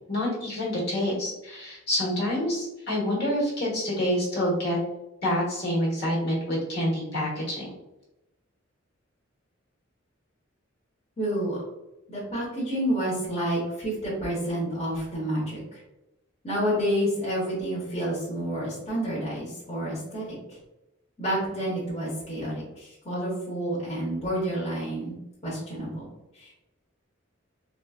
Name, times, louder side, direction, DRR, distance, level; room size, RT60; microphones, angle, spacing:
voice 1, 0.1-4.8 5.2-7.7, left 1 dB, 50° left, -5 dB, 1.3 m, -27 dB
voice 2, 11.2-11.6 12.1-15.8 16.4-20.6 21.2-25.2 25.4-26.1 26.3-26.7, right 1 dB, 30° left, -8 dB, 1.0 m, -29 dB
4.0 x 2.4 x 2.4 m, 0.93 s
head